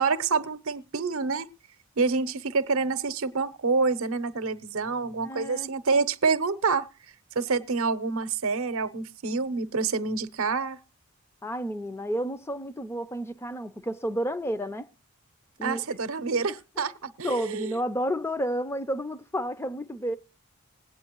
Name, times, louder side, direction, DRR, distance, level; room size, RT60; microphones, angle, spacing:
voice 1, 0.0-1.5 2.0-6.9 7.4-10.8 15.6-17.8, right 4 dB, 65° right, 0.7 m, -27 dB
voice 2, 5.2-5.7 11.4-14.9 15.6-15.8 16.8-16.9 17.2-20.2, equal, 10° left, 0.5 m, -31 dB
20.5 x 8.6 x 3.0 m
head